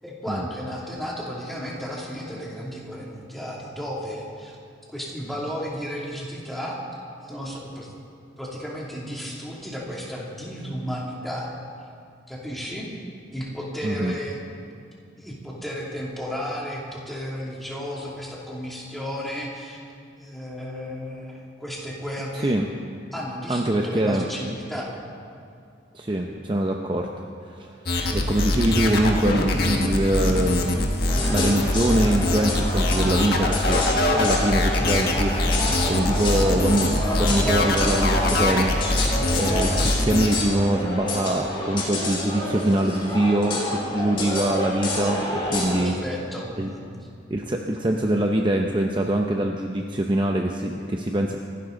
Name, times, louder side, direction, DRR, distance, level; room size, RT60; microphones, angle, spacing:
voice 1, 0.0-4.6 4.9-6.8 7.2-7.9 8.4-11.5 12.3-12.9 13.3-14.8 15.2-19.8 20.2-22.6 23.1-25.0 45.8-46.8, equal, ahead, -5 dB, 2.7 m, -33 dB
voice 2, 13.8-14.1 22.4-22.7 23.5-24.3 25.9-27.8 28.1-30.9 31.3-33.9 34.1-39.0 39.4-45.9 46.6-46.7 47.3-51.4, right 1 dB, 25° right, 2 dB, 0.7 m, -24 dB
sound 1, 27.9-40.4, left 1 dB, 55° left, 1.5 m, -23 dB
sound 2, 31.1-45.8, left 2 dB, 30° left, 2.9 m, -28 dB
25.5 x 12.0 x 3.9 m, 2.5 s
head